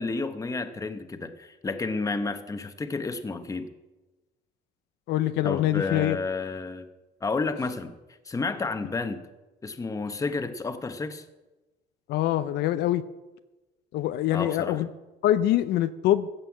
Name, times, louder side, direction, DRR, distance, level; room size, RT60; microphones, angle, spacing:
voice 1, 0.0-3.7 5.4-6.8 7.2-7.9 8.2-9.2 9.6-11.2 14.3-14.8, left 3 dB, 20° left, 8 dB, 1.0 m, -31 dB
voice 2, 5.1-6.2 12.1-13.0 13.9-14.9 15.2-16.3, left 13 dB, 75° left, 11 dB, 0.6 m, -24 dB
14.5 x 5.6 x 8.1 m, 1.1 s
cardioid pair, 110°, 17 cm